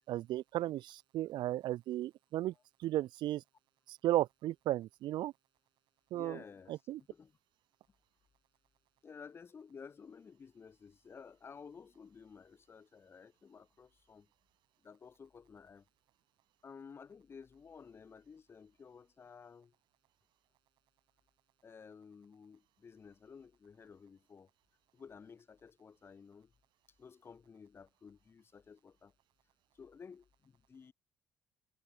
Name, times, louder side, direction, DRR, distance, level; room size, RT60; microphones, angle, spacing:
voice 1, 0.1-2.5 2.8-3.4 3.9-5.3 6.1-6.4 6.7-7.0, right 14 dB, 90° right, 1.9 m, -35 dB
voice 2, 6.1-6.7 7.1-7.3 9.0-14.3 14.8-15.8 16.6-19.7 21.6-24.5 24.9-26.5 27.0-29.1 29.7-30.9, left 6 dB, 30° left, 7.3 m, -54 dB
cardioid pair, 155°, 8 cm